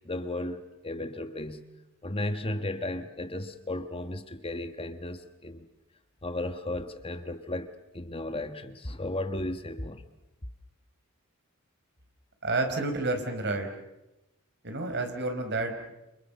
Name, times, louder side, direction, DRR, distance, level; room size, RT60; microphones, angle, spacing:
voice 1, 0.0-1.6 2.0-5.7 6.2-10.0, left 1 dB, 25° left, 9 dB, 1.4 m, -35 dB
voice 2, 12.4-13.7 14.6-15.9, right 2 dB, 55° right, 6 dB, 4.7 m, -30 dB
29.0 x 27.5 x 7.0 m, 0.96 s
head